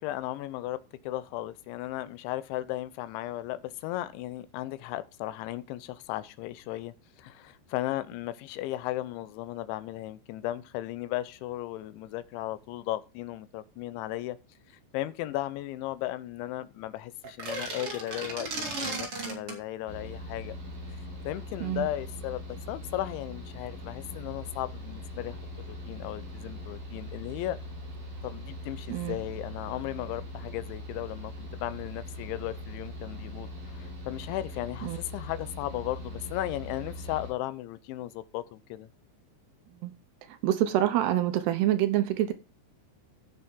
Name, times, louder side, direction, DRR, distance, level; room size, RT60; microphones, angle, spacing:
voice 1, 0.0-14.4 14.7-20.5 21.3-22.4 22.7-25.4 25.7-27.6 28.2-38.9, left 15 dB, 85° left, 3.2 m, -36 dB
sound 1, 17.2-19.6, right 3 dB, 35° right, 3.8 m, -35 dB
Mechanical fan, 19.9-37.3, left 1 dB, 50° right, 9.1 m, -41 dB
voice 2, 40.4-42.3, right 12 dB, 75° right, 2.6 m, -26 dB
16.5 x 6.8 x 3.6 m
omnidirectional pair, 5.2 m